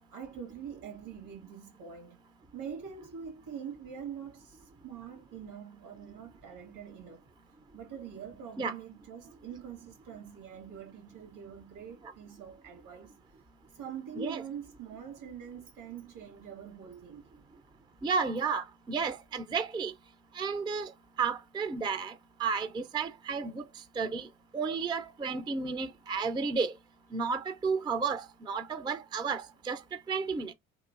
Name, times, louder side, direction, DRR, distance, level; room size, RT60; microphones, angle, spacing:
voice 1, 0.1-2.2 2.5-7.3 7.7-13.1 13.7-17.5, right 7 dB, 75° right, 1.6 m, -44 dB
voice 2, 18.0-19.9 20.3-20.9 21.2-22.1 22.4-23.7 24.0-24.3 24.5-26.7 27.1-29.8 30.1-30.5, right 5 dB, 10° right, 0.4 m, -32 dB
3.0 x 2.4 x 2.3 m
hypercardioid pair, 55°, 44 cm